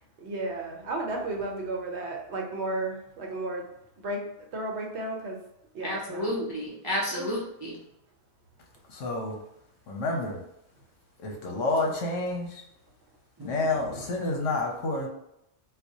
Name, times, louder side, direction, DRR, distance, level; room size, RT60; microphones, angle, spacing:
voice 1, 0.2-3.6 4.0-4.2 4.5-5.4 5.7-6.3 7.1-7.4 13.7-14.1, right 2 dB, 65° right, 1 dB, 1.0 m, -33 dB
voice 2, 5.8-7.7 13.4-13.5, equal, 40° right, -5 dB, 0.3 m, -31 dB
voice 3, 8.9-9.4 9.9-10.4 11.2-12.6 13.4-15.1, left 2 dB, 85° left, 1 dB, 1.1 m, -29 dB
4.1 x 2.2 x 2.7 m, 0.82 s
omnidirectional pair, 1.3 m